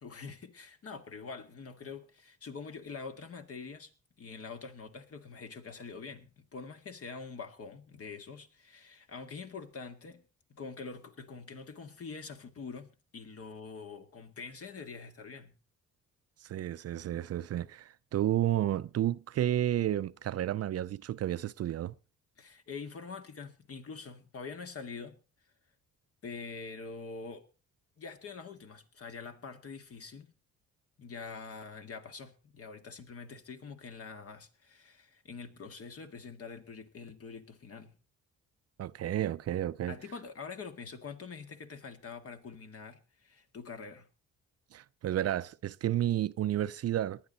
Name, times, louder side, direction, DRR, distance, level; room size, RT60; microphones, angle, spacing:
voice 1, 0.0-10.2 10.5-15.5 22.4-25.2 26.2-27.4 28.0-30.3 31.0-38.0 39.9-44.1, left 5 dB, 50° left, 2.0 m, -45 dB
voice 2, 16.4-21.9 38.8-40.0 44.7-47.2, right 12 dB, 55° right, 0.6 m, -31 dB
19.5 x 11.0 x 4.0 m
cardioid pair, 90°, 30 cm